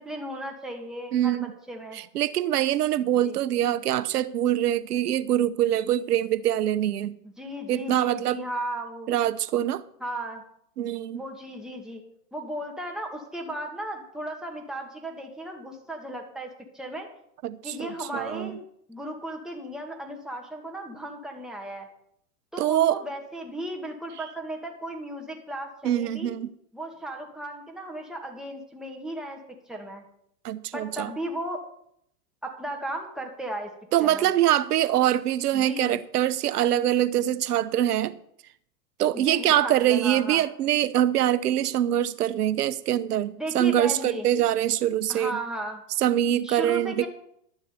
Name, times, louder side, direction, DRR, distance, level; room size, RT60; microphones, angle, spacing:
voice 1, 0.1-2.0 3.2-3.4 7.2-9.1 10.0-10.4 11.1-12.0 12.3-17.1 17.6-18.6 18.9-21.9 22.5-26.3 26.7-29.4 29.7-30.0 30.7-31.6 32.4-33.7 34.0-34.3 35.5-36.0 39.1-40.4 43.4-44.3 45.1-45.8 46.4-47.1, right 1 dB, ahead, 2.2 m, -35 dB
voice 2, 1.1-1.5 1.9-7.2 7.7-8.4 9.1-9.8 10.8-11.2 17.4-18.5 22.6-23.0 25.8-26.5 30.4-31.1 33.9-38.2 39.0-45.4 46.0-47.1, right 12 dB, 70° right, 1.0 m, -24 dB
11.5 x 7.3 x 6.9 m
hypercardioid pair, 110°, 49 cm